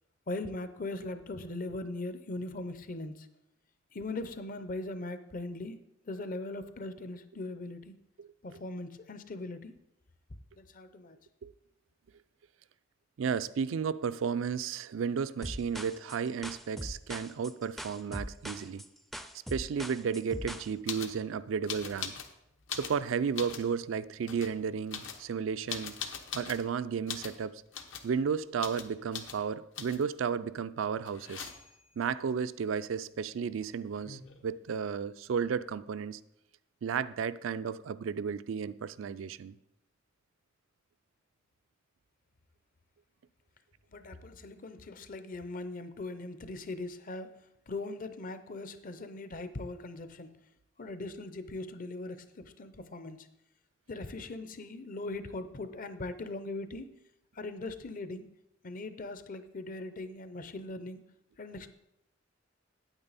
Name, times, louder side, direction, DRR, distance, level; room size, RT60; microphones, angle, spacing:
voice 1, 0.3-3.3 3.9-5.8 6.1-7.9 8.4-9.7 10.6-11.2 43.9-50.3 50.8-53.3 53.9-56.9 57.4-58.3 58.6-61.7, left 2 dB, 45° left, 0.6 m, -40 dB
voice 2, 13.2-18.8 19.5-22.1 22.7-26.0 26.3-27.6 28.0-31.5 32.0-36.2 36.8-39.6, right 6 dB, 80° right, 0.4 m, -33 dB
sound 1, 15.4-20.7, equal, ahead, 0.4 m, -41 dB
sound 2, 20.9-21.2 21.7-22.3 22.6-23.7 24.2-24.5 24.9-26.7 27.1-27.4 27.7-28.1 28.6-28.9 29.1-29.4 29.8-30.1 31.1-31.8 33.6-33.7 33.9-34.5, left 7 dB, 70° left, 0.9 m, -41 dB
8.9 x 8.7 x 4.1 m
head